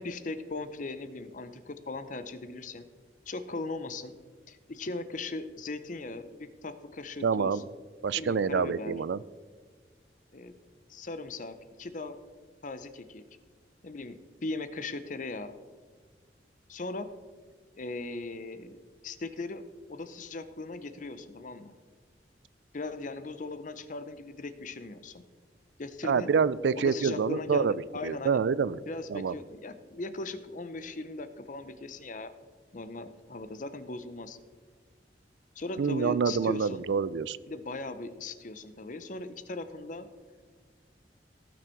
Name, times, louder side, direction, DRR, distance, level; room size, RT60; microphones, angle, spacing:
voice 1, 0.0-2.9 3.3-4.1 4.5-7.6 8.1-8.9 10.3-10.5 10.9-12.2 12.6-13.2 13.8-15.5 16.7-17.1 17.8-18.8 19.0-19.6 19.9-21.7 22.7-25.2 25.8-26.3 26.7-28.4 28.9-32.3 32.7-34.4 35.6-36.8 37.5-40.1, left 3 dB, 45° left, 11 dB, 0.7 m, -38 dB
voice 2, 7.2-7.6 8.0-9.2 26.0-27.7 28.0-28.8 29.1-29.4 35.8-37.4, right 6 dB, 85° right, 19 dB, 0.4 m, -27 dB
17.0 x 6.3 x 4.5 m, 1.5 s
head